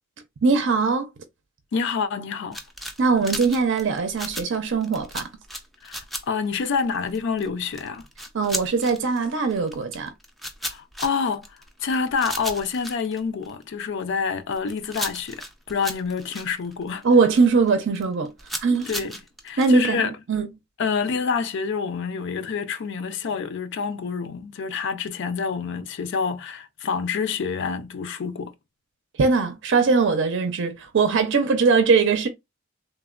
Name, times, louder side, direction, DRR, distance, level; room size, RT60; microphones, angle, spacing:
voice 1, 0.4-1.1 3.0-5.3 8.3-10.1 17.0-18.3 18.6-18.9 19.6-20.5 29.2-32.3, right 4 dB, 65° right, 0.5 m, -21 dB
voice 2, 1.7-2.6 5.8-8.1 10.6-11.5 11.8-17.0 18.9-19.1 19.4-20.1 20.8-28.5, left 5 dB, 65° left, 0.4 m, -27 dB
sound 1, 2.5-13.8 14.3-17.7 17.9-19.7, equal, ahead, 0.4 m, -35 dB
3.2 x 2.1 x 2.4 m
head